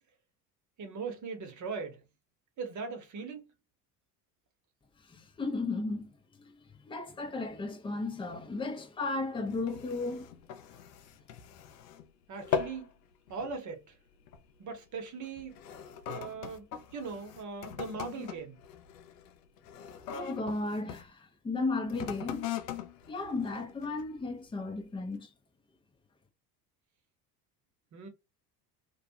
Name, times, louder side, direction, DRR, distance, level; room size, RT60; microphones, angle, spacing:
voice 1, 0.8-2.0 2.6-3.4 12.3-12.9 13.3-13.8 14.6-15.6 16.1-16.6 16.9-18.6 27.9-28.1, right 5 dB, 40° right, 1.0 m, -39 dB
voice 2, 5.4-6.1 6.9-10.2 20.1-21.1 21.4-22.4 23.1-25.3, left 3 dB, 10° left, 0.6 m, -34 dB
sound 1, 9.5-12.1 12.3-12.9 13.3-13.6 14.3-14.5 15.2-21.1 21.8-24.2 24.8-24.9, left 8 dB, 85° left, 0.6 m, -40 dB
2.4 x 2.3 x 2.7 m
hypercardioid pair, 70°, 47 cm